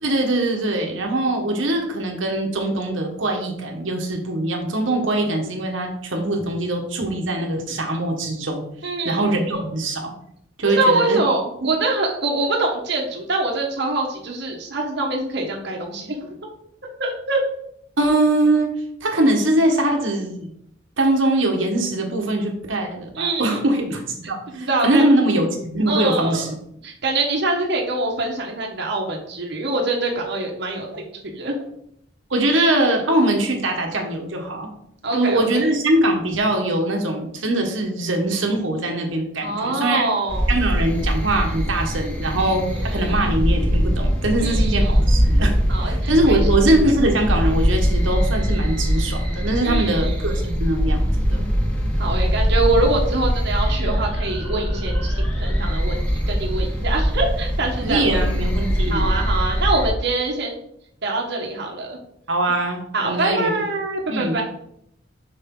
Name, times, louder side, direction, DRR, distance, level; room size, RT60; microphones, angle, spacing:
voice 1, 0.0-8.6 9.0-10.1 10.6-11.2 11.6-11.7 18.0-18.7 19.0-20.5 21.0-24.0 24.3-26.5 32.3-34.7 35.1-40.1 40.5-45.5 45.8-51.4 57.8-59.1 62.3-63.5 64.1-64.4, right 1 dB, 75° right, 2 dB, 1.3 m, -22 dB
voice 2, 8.8-9.6 10.8-16.3 17.0-17.4 23.1-23.6 24.5-25.1 25.9-26.5 26.8-31.0 31.3-31.6 35.0-35.7 39.4-40.5 42.7-43.3 44.4-44.9 45.7-46.5 49.6-50.5 52.0-56.0 56.3-58.2 58.9-60.6 61.0-62.0 62.9-64.4, right 2 dB, 60° right, 0 dB, 1.2 m, -24 dB
sound 1, 40.3-59.9, equal, 5° left, 1.6 m, -22 dB
6.9 x 5.5 x 3.8 m, 0.71 s
head